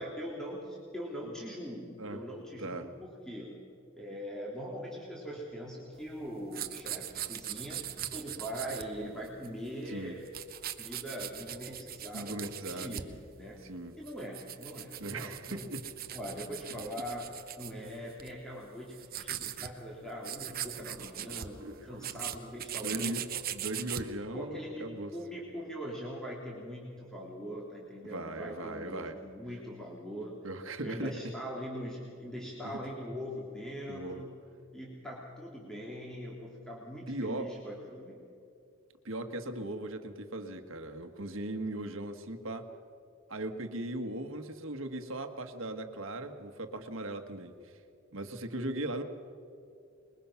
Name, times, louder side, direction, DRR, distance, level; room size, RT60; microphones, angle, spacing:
voice 1, 0.0-3.6 4.0-10.3 10.8-13.1 13.4-13.6 14.0-15.6 16.1-17.3 17.6-23.2 24.3-30.4 30.8-34.4 34.7-38.3, equal, 5° left, -5 dB, 2.9 m, -42 dB
sound 1, 6.0-9.7 10.0-13.2 13.7-18.4 18.7-19.7 20.0-20.1 20.2-24.1, right 11 dB, 45° right, 0.9 m, -40 dB
voice 2, 12.1-13.0 13.6-13.9 15.0-15.8 21.6-22.2 22.8-23.2 23.5-25.1 28.1-29.2 30.4-31.1 32.6-32.8 33.9-34.2 37.1-37.5 39.0-42.7 43.3-47.7 48.1-49.0, right 1 dB, 70° right, 6 dB, 1.6 m, -38 dB
26.0 x 21.5 x 5.8 m, 2.5 s
head